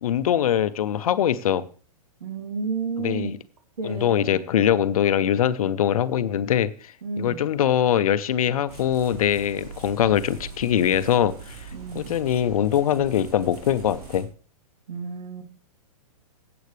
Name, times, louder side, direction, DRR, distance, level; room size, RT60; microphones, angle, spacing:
voice 1, 0.0-1.7 3.0-3.3 3.8-11.6 11.9-14.3, left 10 dB, 70° left, 13 dB, 0.8 m, -22 dB
voice 2, 2.2-3.3 3.8-4.4 7.0-7.5 11.7-12.1 14.9-15.4, right 4 dB, 80° right, 4 dB, 2.7 m, -31 dB
sound 1, 8.7-14.2, right 4 dB, 40° right, 4.8 m, -41 dB
16.0 x 8.0 x 3.3 m, 0.39 s
hypercardioid pair, 135°, 19 cm